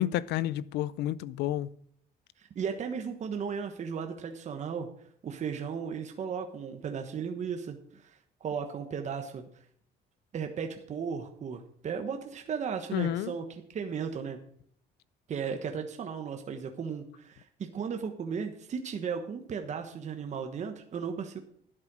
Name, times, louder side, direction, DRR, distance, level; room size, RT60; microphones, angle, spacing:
voice 1, 0.0-1.7 12.9-13.3, left 13 dB, 80° left, 0.5 m, -30 dB
voice 2, 2.4-4.9 5.2-9.4 10.3-13.4 13.7-14.4 15.3-21.4, right 6 dB, 45° right, 1.2 m, -35 dB
11.5 x 7.6 x 6.1 m
cardioid pair, 110°, 17 cm